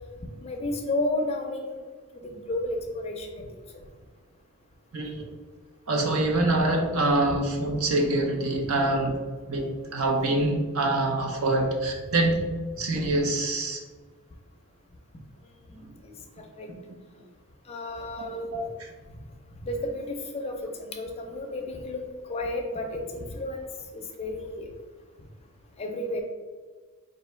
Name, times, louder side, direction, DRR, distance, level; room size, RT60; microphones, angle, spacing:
voice 1, 0.4-1.8 2.1-3.6 15.7-16.7 17.7-18.5 19.1-19.2 19.6-23.7 23.9-24.7 25.8-26.2, left 1 dB, 30° left, 4 dB, 0.4 m, -32 dB
voice 2, 4.9-5.3 5.9-9.2 9.5-12.5 12.8-13.8 15.8-15.9 18.3-18.9, right 2 dB, 70° right, 3 dB, 0.6 m, -25 dB
4.5 x 2.6 x 3.2 m, 1.4 s
head